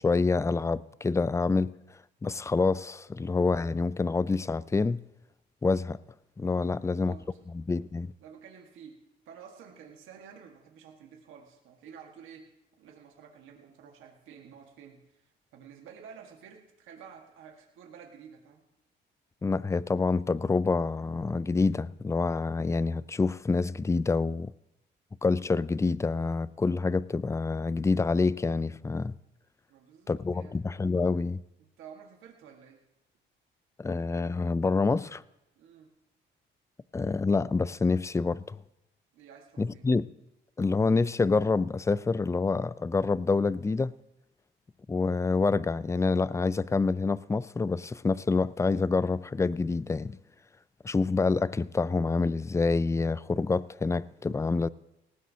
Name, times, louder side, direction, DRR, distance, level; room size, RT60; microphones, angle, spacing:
voice 1, 0.0-1.7 2.2-5.0 5.6-6.0 6.4-7.1 7.5-8.1 19.4-24.5 25.2-29.1 30.1-31.4 33.8-35.2 36.9-38.6 39.6-40.1 40.6-43.9 44.9-50.2 50.8-54.7, left 4 dB, 15° left, 0.4 m, -27 dB
voice 2, 6.7-7.5 8.2-9.0 9.2-12.5 12.8-18.6 29.7-30.6 31.6-32.8 35.6-35.9 39.1-39.9, right 7 dB, 90° right, 1.6 m, -51 dB
18.5 x 15.5 x 2.8 m
cardioid pair, 90°, 20 cm